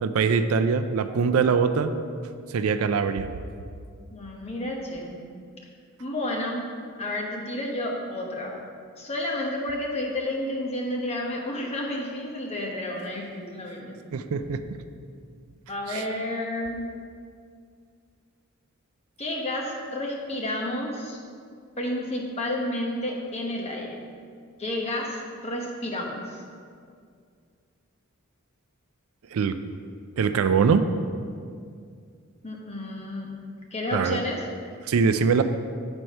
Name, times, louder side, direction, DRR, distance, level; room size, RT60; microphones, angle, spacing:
voice 1, 0.0-1.9 2.5-3.3 14.1-14.6 15.9-16.0 29.3-29.6 30.2-30.9 33.9-34.2 34.9-35.4, right 5 dB, 75° right, 10 dB, 0.4 m, -22 dB
voice 2, 4.1-5.2 6.0-6.6 7.0-8.5 9.0-13.9 15.7-16.8 19.2-21.2 21.8-23.9 24.6-26.4 32.4-33.3 33.7-34.4, left 1 dB, 30° left, -1 dB, 1.0 m, -31 dB
7.7 x 4.5 x 5.4 m, 2.2 s
head